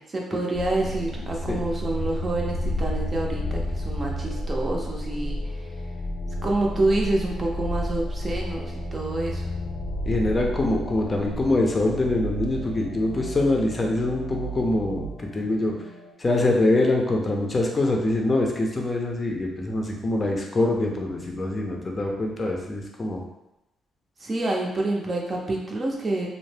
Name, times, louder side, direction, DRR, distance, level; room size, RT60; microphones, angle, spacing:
voice 1, 0.0-5.4 6.4-9.5 24.2-26.3, right 2 dB, 30° right, -1 dB, 0.6 m, -27 dB
sound 1, 0.5-16.1, equal, 90° left, 0.4 m, -31 dB
voice 2, 10.0-15.1 15.3-15.7 16.2-23.2, left 2 dB, 30° left, 0 dB, 0.6 m, -24 dB
2.7 x 2.0 x 3.3 m, 0.93 s
cardioid pair, 90°, 0 cm